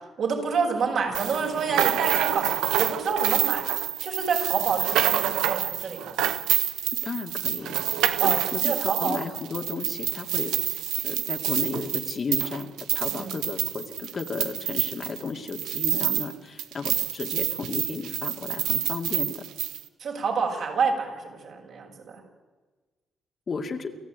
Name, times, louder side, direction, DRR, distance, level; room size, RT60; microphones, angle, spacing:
voice 1, 0.2-3.7 4.0-6.1 8.2-9.2 13.1-13.3 15.9-16.1 20.0-22.2, right 5 dB, 65° right, 0 dB, 7.0 m, -28 dB
sound 1, 1.1-16.3 16.6-19.8, right 11 dB, 90° right, 1.2 m, -27 dB
voice 2, 6.9-19.5 23.5-24.0, left 4 dB, 40° left, 4 dB, 2.3 m, -34 dB
28.5 x 14.5 x 9.4 m, 1.3 s
cardioid pair, 90°, 0 cm